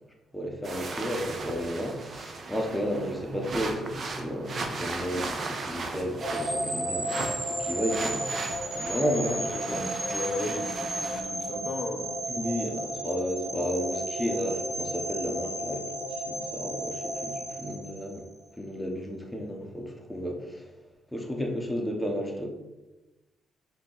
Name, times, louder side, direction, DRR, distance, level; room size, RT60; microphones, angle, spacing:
voice 1, 0.3-9.8 12.3-18.2 18.6-20.7 21.1-22.5, equal, 5° left, 1 dB, 0.8 m, -33 dB
sound 1, 0.6-11.2, right 3 dB, 45° right, 0.6 m, -37 dB
sound 2, 6.2-18.4, right 1 dB, 20° right, 1.3 m, -33 dB
voice 2, 9.5-12.2, left 2 dB, 40° left, 3 dB, 0.7 m, -35 dB
4.4 x 2.8 x 3.9 m, 1.1 s
cardioid pair, 90°, 0 cm